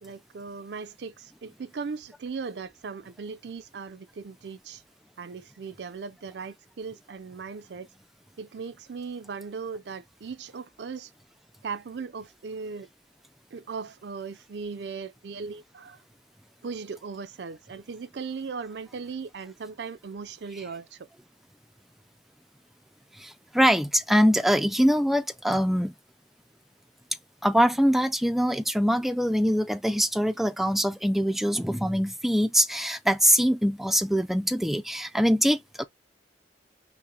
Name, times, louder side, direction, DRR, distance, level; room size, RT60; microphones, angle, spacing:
voice 1, 0.0-4.8 5.2-7.9 8.4-11.1 11.6-12.9 13.5-16.0 16.6-21.1, right 5 dB, 70° right, 0.4 m, -38 dB
voice 2, 23.2-25.9 27.4-35.8, equal, ahead, 0.3 m, -23 dB
5.6 x 2.1 x 3.8 m
head